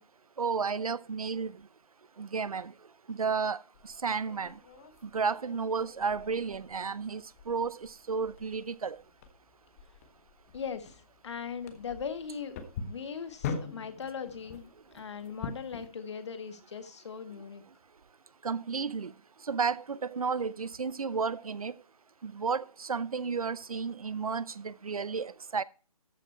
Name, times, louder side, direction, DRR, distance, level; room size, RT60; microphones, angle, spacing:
voice 1, 0.4-1.6 2.2-2.7 3.1-4.6 5.0-9.0 18.4-19.1 19.4-21.7 22.2-25.6, right 5 dB, 70° right, 0.7 m, -32 dB
sound 1, 3.7-15.9, left 5 dB, 25° left, 1.4 m, -44 dB
voice 2, 10.5-12.6 12.9-17.6, left 6 dB, 50° left, 1.9 m, -39 dB
13.5 x 6.2 x 4.4 m
figure-of-eight pair, 155°, 19 cm